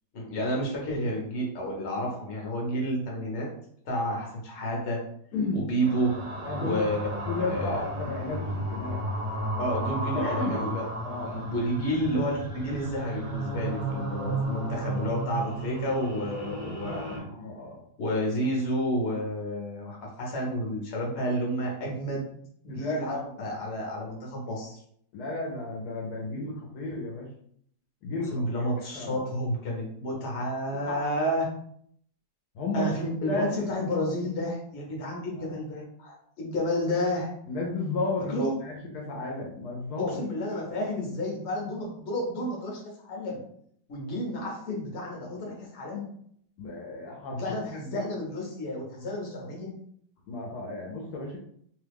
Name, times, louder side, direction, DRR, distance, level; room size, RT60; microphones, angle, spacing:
voice 1, 0.1-3.5 3.8-5.0 5.5-6.2 6.6-7.0 7.4-7.8 9.6-10.8 11.2-17.2 18.0-22.4 22.6-24.8 28.3-31.4 32.7-37.3 38.3-38.5 40.0-43.4 43.9-46.1 47.4-49.8, equal, 50° left, -1 dB, 1.1 m, -30 dB
sound 1, 5.8-17.2, right 1 dB, 40° right, 0.4 m, -33 dB
voice 2, 6.4-6.9 7.3-9.0 10.1-10.6 11.0-11.5 16.9-17.8 22.7-23.5 25.1-27.3 28.0-28.7 28.9-29.2 30.9-31.1 32.5-32.9 33.3-33.5 35.3-35.5 37.5-40.2 46.6-47.5 47.9-48.0 50.3-51.4, left 2 dB, 70° left, -2 dB, 1.2 m, -33 dB
3.0 x 2.3 x 3.4 m, 0.66 s
omnidirectional pair, 1.8 m